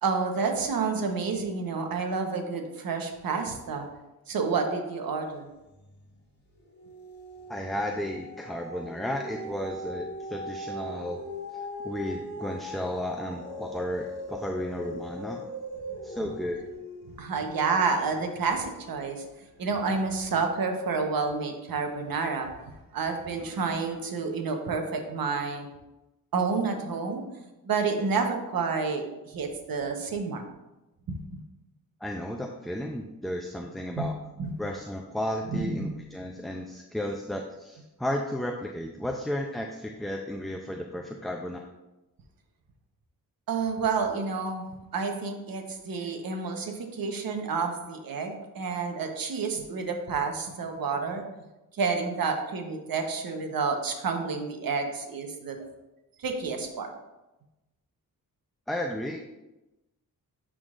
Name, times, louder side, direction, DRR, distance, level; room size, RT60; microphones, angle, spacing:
voice 1, 0.0-3.9 4.3-5.5 14.8-15.0 17.2-19.2 19.6-22.5 22.9-25.7 26.3-27.2 27.6-30.4 31.1-31.4 33.9-34.1 34.4-34.5 35.5-36.0 43.5-44.6 44.9-51.2 51.8-55.6 56.2-56.9, right 4 dB, 80° right, 4 dB, 1.0 m, -29 dB
sound 1, 5.7-6.2 6.6-19.0 19.6-19.7, equal, 30° left, 1.8 m, -40 dB
voice 2, 7.5-11.2 11.5-15.5 16.0-16.8 32.0-34.1 34.6-41.6 58.7-59.2, left 1 dB, ahead, 2 dB, 0.4 m, -33 dB
11.0 x 3.8 x 2.5 m, 1.0 s
cardioid pair, 80°, 35 cm